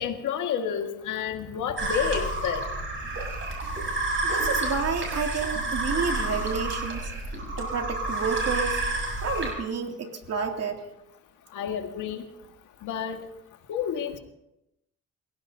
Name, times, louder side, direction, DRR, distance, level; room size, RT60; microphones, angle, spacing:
voice 1, 0.0-2.7 11.5-12.2 12.8-13.2 13.7-14.2, left 8 dB, 80° left, 5 dB, 1.9 m, -30 dB
sound 1, 1.8-9.5, right 2 dB, 40° right, 6.4 m, -29 dB
voice 2, 4.2-7.1 7.6-8.8 9.2-10.8, right 5 dB, 55° right, 3 dB, 2.7 m, -30 dB
29.5 x 17.0 x 2.8 m, 0.88 s
cardioid pair, 90°, 30 cm